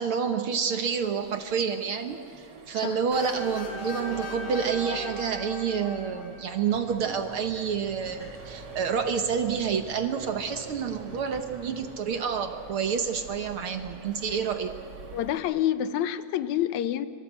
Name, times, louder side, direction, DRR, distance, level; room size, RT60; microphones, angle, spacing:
voice 1, 0.0-14.7, right 6 dB, 60° right, 7 dB, 1.5 m, -29 dB
Accelerating revving vroom, 0.8-15.4, right 4 dB, 40° right, 1.9 m, -47 dB
sound 1, 3.1-6.9, left 2 dB, 60° left, 5.4 m, -38 dB
sound 2, 6.7-12.0, left 1 dB, 10° left, 0.7 m, -49 dB
voice 2, 15.1-17.1, left 11 dB, 75° left, 12 dB, 2.1 m, -27 dB
26.0 x 22.5 x 8.2 m, 2.4 s
omnidirectional pair, 3.5 m